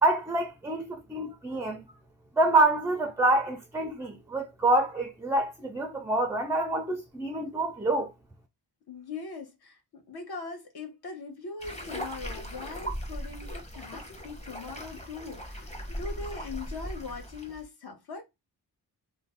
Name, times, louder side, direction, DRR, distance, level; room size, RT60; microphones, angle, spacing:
voice 1, 0.0-1.8 2.4-8.1, right 2 dB, 10° right, 0.3 m, -26 dB
voice 2, 8.9-18.2, left 4 dB, 65° left, 1.0 m, -41 dB
sound 1, 11.6-17.6, equal, 15° left, 0.8 m, -38 dB
2.5 x 2.1 x 3.3 m
cardioid pair, 60°, 42 cm